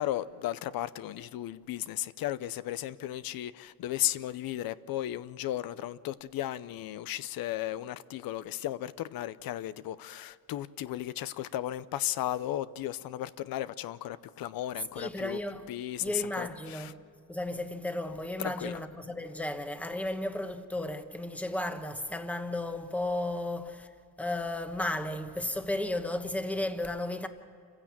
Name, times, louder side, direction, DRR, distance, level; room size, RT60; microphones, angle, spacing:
voice 1, 0.0-15.4 15.7-16.9 18.4-18.8, left 13 dB, 90° left, 0.7 m, -35 dB
voice 2, 14.9-15.7 16.0-16.9 17.3-23.9 24.2-27.3, left 1 dB, 5° left, 1.1 m, -34 dB
27.5 x 16.0 x 7.5 m
cardioid pair, 160°, 34 cm